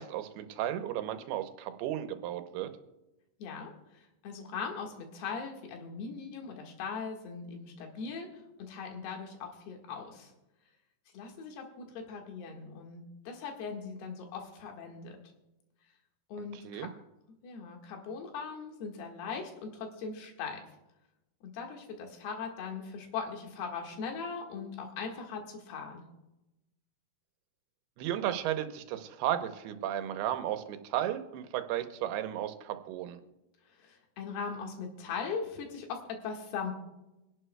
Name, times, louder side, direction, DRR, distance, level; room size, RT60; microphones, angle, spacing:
voice 1, 0.0-2.7 16.5-16.9 28.0-33.2, right 11 dB, 90° right, 8 dB, 2.8 m, -34 dB
voice 2, 3.4-8.3 8.6-10.3 11.1-15.2 16.3-16.9 17.4-20.6 21.4-26.0 33.7-36.7, left 5 dB, 85° left, 2 dB, 3.7 m, -40 dB
25.5 x 11.0 x 2.2 m, 0.95 s
omnidirectional pair, 4.5 m